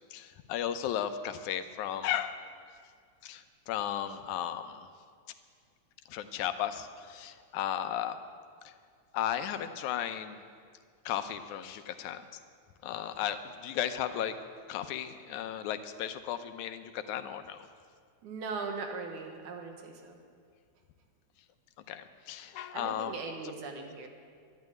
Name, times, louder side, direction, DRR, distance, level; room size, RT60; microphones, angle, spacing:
voice 1, 0.1-2.4 3.2-4.9 6.1-8.2 8.7-8.8 9.1-10.4 11.1-12.2 12.8-14.4 14.7-17.6 21.9-23.2, left 10 dB, 80° left, 9 dB, 2.2 m, -35 dB
voice 2, 18.2-20.2 22.7-24.1, right 4 dB, 80° right, 3 dB, 2.9 m, -39 dB
11.5 x 11.5 x 9.3 m, 2.1 s
omnidirectional pair, 3.4 m